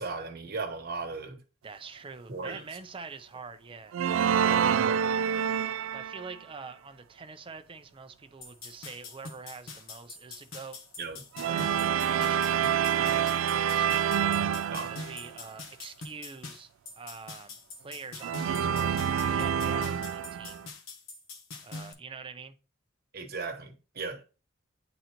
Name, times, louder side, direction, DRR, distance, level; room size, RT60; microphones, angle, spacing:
voice 1, 0.0-1.4 2.3-2.6 4.4-5.0 11.0-11.2 14.7-14.9 23.1-24.2, right 4 dB, 50° right, 1.2 m, -37 dB
voice 2, 1.6-4.0 4.4-5.1 5.9-10.8 11.4-14.2 14.7-17.6 17.8-20.6 21.6-22.6, right 4 dB, 25° right, 0.6 m, -45 dB
sound 1, 3.9-6.4 11.4-15.4 18.2-20.7, right 8 dB, 75° right, 0.3 m, -27 dB
sound 2, 8.4-21.9, left 3 dB, 80° left, 1.2 m, -44 dB
9.0 x 4.0 x 2.9 m
head